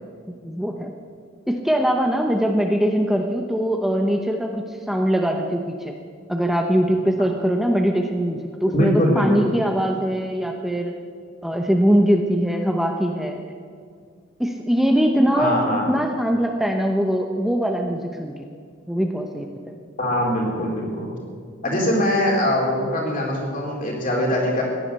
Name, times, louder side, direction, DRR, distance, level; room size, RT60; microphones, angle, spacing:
voice 1, 0.4-0.9 1.5-5.9 6.3-11.0 11.4-13.4 14.4-15.5 15.9-18.3 18.9-19.8 21.7-21.8, equal, ahead, 2 dB, 0.8 m, -22 dB
voice 2, 8.7-9.5 15.4-15.9 20.0-21.1 21.6-24.6, equal, 45° left, -2 dB, 4.1 m, -22 dB
16.0 x 11.0 x 8.1 m, 2.2 s
head